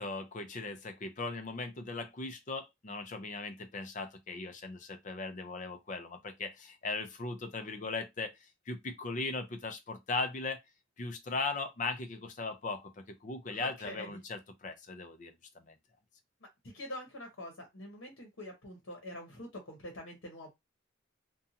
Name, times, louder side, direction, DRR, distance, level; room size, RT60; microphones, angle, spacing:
voice 1, 0.0-8.3 8.7-10.6 11.0-15.7, left 3 dB, 40° left, 0.5 m, -38 dB
voice 2, 13.5-14.1 16.7-20.5, left 1 dB, 75° left, 0.9 m, -45 dB
2.6 x 2.3 x 2.7 m
head